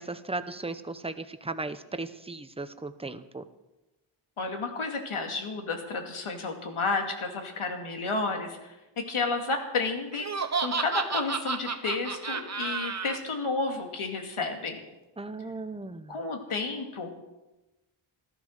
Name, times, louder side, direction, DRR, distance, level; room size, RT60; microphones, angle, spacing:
voice 1, 0.0-3.4 15.2-16.2, right 3 dB, 10° right, 10 dB, 0.8 m, -36 dB
voice 2, 4.4-14.8 16.1-17.1, left 3 dB, 85° left, 4 dB, 2.4 m, -31 dB
Laughter, 10.1-13.2, right 5 dB, 35° right, 1.1 m, -31 dB
14.5 x 13.5 x 6.6 m, 1.0 s
wide cardioid pair, 115°, 49 cm